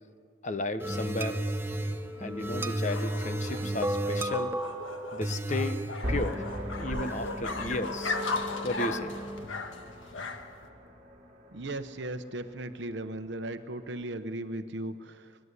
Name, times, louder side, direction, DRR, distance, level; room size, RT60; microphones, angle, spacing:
voice 1, 0.4-1.4 2.2-4.5 5.1-5.8 6.1-6.4 6.8-8.2 8.6-9.1, left 2 dB, 40° left, 10 dB, 1.0 m, -34 dB
sound 1, 0.8-9.4, right 1 dB, 10° right, 0.8 m, -34 dB
sound 2, 1.4-10.7, left 3 dB, 80° left, 1.6 m, -37 dB
sound 3, 6.0-14.0, equal, 35° right, 2.7 m, -41 dB
voice 2, 11.5-15.4, right 1 dB, 60° right, 9 dB, 0.9 m, -37 dB
23.5 x 19.5 x 8.2 m, 2.2 s
head